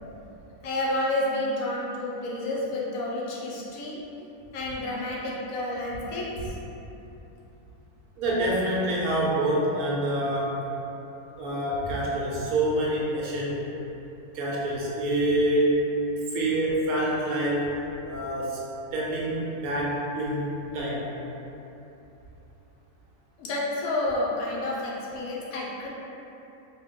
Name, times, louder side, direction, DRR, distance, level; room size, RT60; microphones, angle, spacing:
voice 1, 0.6-4.0 4.5-6.3 23.4-25.9, left 1 dB, 75° left, -4 dB, 1.0 m, -30 dB
voice 2, 8.2-10.6 11.4-13.7 14.3-15.8 16.3-17.7 18.0-21.1, right 1 dB, 75° right, -5 dB, 1.0 m, -26 dB
2.6 x 2.2 x 3.5 m, 3.0 s
omnidirectional pair, 1.6 m